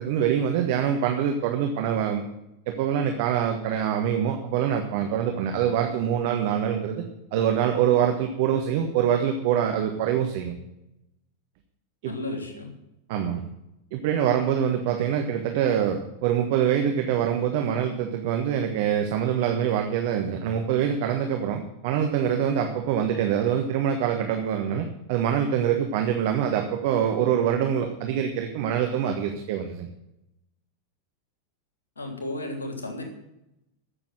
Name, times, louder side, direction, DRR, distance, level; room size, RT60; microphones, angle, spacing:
voice 1, 0.0-2.2 2.7-7.0 7.3-10.5 12.0-12.1 13.1-13.5 13.9-29.9, right 9 dB, 50° right, 4 dB, 1.4 m, -25 dB
voice 2, 12.0-12.7 31.9-33.0, left 1 dB, 75° left, 4 dB, 3.2 m, -33 dB
14.5 x 6.9 x 7.8 m, 0.87 s
figure-of-eight pair, 90°, 0 cm